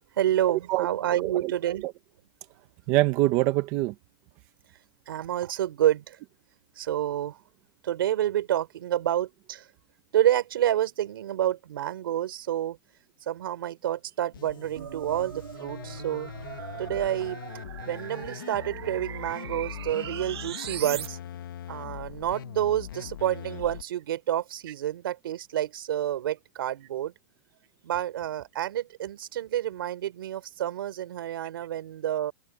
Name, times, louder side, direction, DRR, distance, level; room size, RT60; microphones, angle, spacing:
voice 1, 0.2-1.8 5.1-6.2 6.8-7.4 7.8-9.6 10.1-12.8 13.2-16.3 16.8-17.4 17.8-21.2 21.7-27.1 27.8-32.3, right 12 dB, 60° right, 3.4 m, -28 dB
voice 2, 0.7-1.5 1.8-1.9 2.9-3.9, right 18 dB, 20° right, 0.7 m, -25 dB
sound 1, 14.3-23.8, left 11 dB, 55° left, 1.3 m, -41 dB
sound 2, 14.8-21.1, right 10 dB, 90° right, 1.3 m, -40 dB
supercardioid pair, 180°, 13 cm